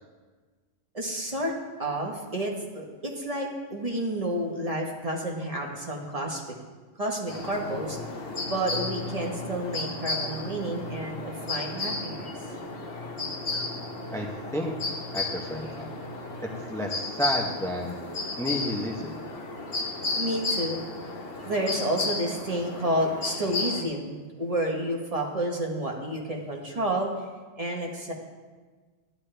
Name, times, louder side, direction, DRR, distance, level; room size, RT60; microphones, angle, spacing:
voice 1, 0.9-1.5 1.8-6.4 6.9-8.0 8.4-12.3 20.2-20.8 21.4-27.1 27.5-28.1, right 1 dB, 30° right, -1 dB, 1.3 m, -30 dB
sound 1, 7.3-23.8, left 3 dB, 50° left, 1.2 m, -33 dB
voice 2, 15.1-15.9 16.7-17.9 18.4-19.2, equal, 5° left, 0 dB, 0.7 m, -31 dB
11.5 x 11.0 x 3.4 m, 1.4 s
omnidirectional pair, 1.4 m